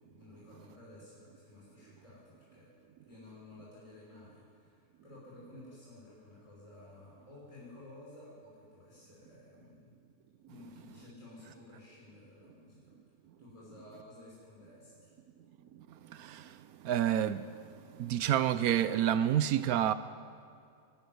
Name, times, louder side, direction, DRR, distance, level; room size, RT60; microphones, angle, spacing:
voice 1, 0.0-2.7 3.1-9.9 10.5-12.9 13.4-15.1, left 2 dB, 20° left, 5.8 m, -54 dB
voice 2, 16.8-17.4 18.0-19.9, right 11 dB, 85° right, 1.2 m, -28 dB
23.0 x 13.5 x 9.4 m
omnidirectional pair, 1.5 m